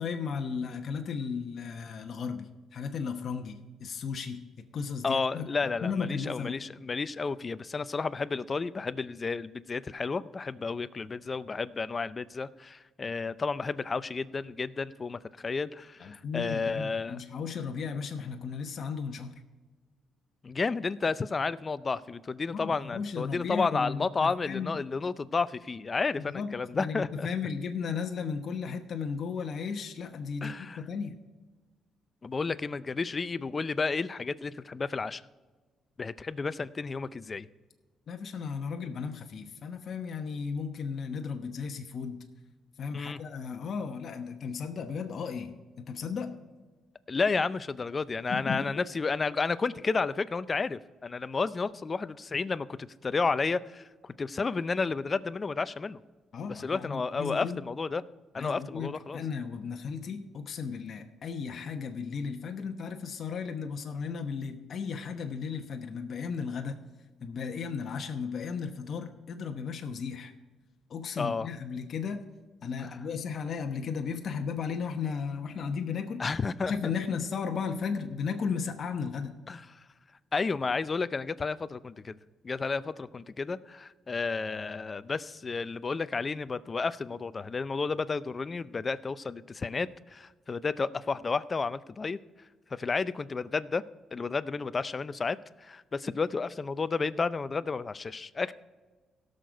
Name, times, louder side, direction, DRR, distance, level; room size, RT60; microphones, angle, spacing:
voice 1, 0.0-4.4 4.7-6.5 16.0-19.4 22.5-24.8 26.2-31.2 38.1-42.2 42.8-46.3 48.3-48.9 56.3-57.6 58.4-66.8 67.2-70.3 70.9-72.2 72.6-76.3 76.6-79.4, left 6 dB, 55° left, 4 dB, 0.9 m, -35 dB
voice 2, 5.0-17.2 20.4-27.3 30.4-30.8 32.2-35.2 36.0-37.5 42.9-43.2 47.1-56.0 56.5-58.0 58.3-59.2 71.2-71.5 72.8-72.9 76.2-76.9 79.5-79.8 80.3-82.2 82.4-92.2 92.7-93.8 94.1-98.5, left 4 dB, 35° left, 15 dB, 0.5 m, -32 dB
17.0 x 6.6 x 4.6 m, 1.3 s
cardioid pair, 90°, 0 cm